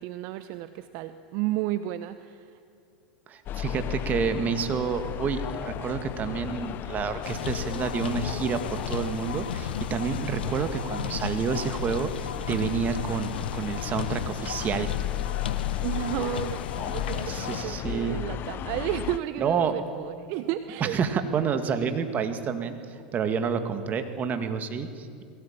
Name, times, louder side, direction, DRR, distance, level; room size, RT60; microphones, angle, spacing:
voice 1, 0.0-2.6 15.8-21.0, right 14 dB, 55° right, 12 dB, 0.9 m, -32 dB
voice 2, 3.3-14.9 17.3-18.2 19.4-19.8 20.8-22.8 23.1-25.2, right 6 dB, 35° right, 8 dB, 2.1 m, -29 dB
sound 1, 3.5-19.2, left 12 dB, 40° left, 0.6 m, -35 dB
sound 2, 7.2-17.6, left 8 dB, 90° left, 1.2 m, -35 dB
21.5 x 17.5 x 8.9 m, 2.5 s
hypercardioid pair, 105°, 5 cm